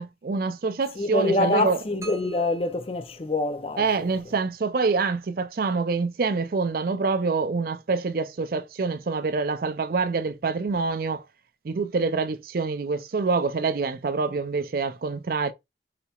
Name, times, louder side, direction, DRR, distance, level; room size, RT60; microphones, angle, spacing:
voice 1, 0.0-1.8 3.8-11.2 11.6-15.5, right 4 dB, 50° right, 0.4 m, -26 dB
voice 2, 1.0-4.1, left 2 dB, 30° left, 0.5 m, -26 dB
sound 1, 2.0-3.9, right 3 dB, 15° right, 0.7 m, -46 dB
4.1 x 2.9 x 2.3 m
head